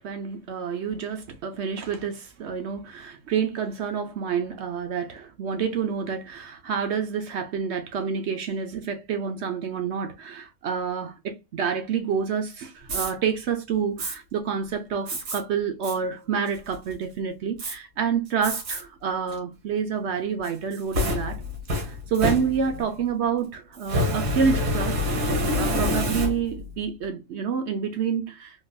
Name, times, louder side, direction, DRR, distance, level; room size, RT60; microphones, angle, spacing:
voice 1, 0.0-21.4 21.8-25.0 25.6-28.7, right 6 dB, 65° right, 0.7 m, -28 dB
Fire, 12.8-13.1 14.0-14.2 15.1-15.4 15.8-16.0 16.5-16.9 17.6-17.7 18.4-18.8 19.3-19.4 20.4-22.9 23.8-26.7, left 1 dB, 90° right, 1.7 m, -27 dB
3.8 x 2.3 x 2.6 m
omnidirectional pair, 1.6 m